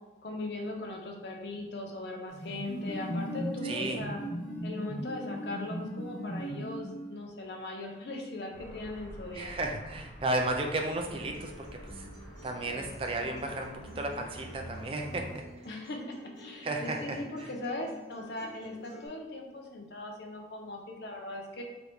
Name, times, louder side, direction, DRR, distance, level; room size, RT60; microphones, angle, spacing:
voice 1, 0.2-4.2 4.6-9.5 15.7-21.6, left 2 dB, 60° left, 1 dB, 0.7 m, -39 dB
sound 1, 2.3-7.2, equal, 45° left, 1.2 m, -37 dB
voice 2, 3.6-4.0 9.3-12.1 12.4-15.3 16.6-17.5, right 2 dB, 30° right, 2 dB, 0.4 m, -34 dB
sound 2, 8.5-15.4, right 1 dB, 5° left, 1.0 m, -48 dB
Acoustic guitar, 11.1-19.1, left 1 dB, 65° right, 1.3 m, -51 dB
3.9 x 2.9 x 3.5 m, 1.2 s
head